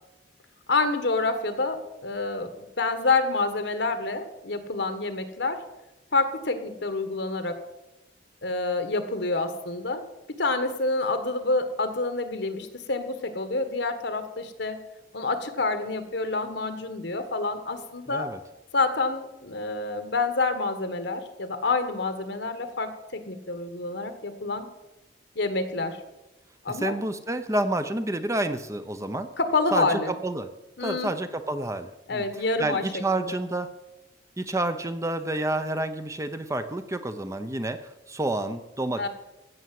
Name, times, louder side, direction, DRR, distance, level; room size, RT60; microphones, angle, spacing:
voice 1, 0.7-5.6 6.1-7.6 8.4-10.0 10.3-14.8 15.1-18.3 18.7-24.7 25.3-26.0 26.6-26.9 29.4-30.1 30.8-31.1 32.1-32.9 33.2-33.4 39.0-39.1, left 3 dB, 70° left, 9 dB, 1.5 m, -27 dB
voice 2, 18.1-18.4 26.7-29.3 29.7-30.5 30.8-32.2 32.6-33.7 34.4-39.1, right 2 dB, 15° right, 9 dB, 0.8 m, -29 dB
16.0 x 6.8 x 7.7 m, 0.97 s
head